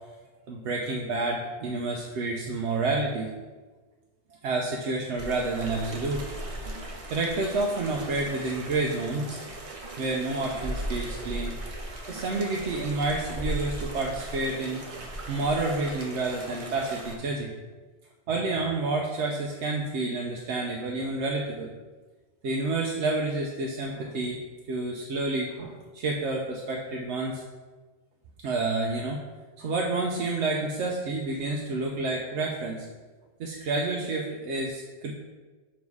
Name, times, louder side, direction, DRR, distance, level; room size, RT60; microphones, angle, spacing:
voice 1, 0.5-3.3 4.4-6.2 7.1-9.4 10.0-11.6 12.1-14.8 15.3-17.6 18.3-21.7 22.4-27.4 28.4-29.2 29.6-32.9 33.4-35.1, right 3 dB, 85° right, 0 dB, 0.9 m, -29 dB
sound 1, 5.2-17.1, right 1 dB, 35° right, 0.7 m, -37 dB
7.0 x 3.1 x 4.7 m, 1.3 s
omnidirectional pair, 1.1 m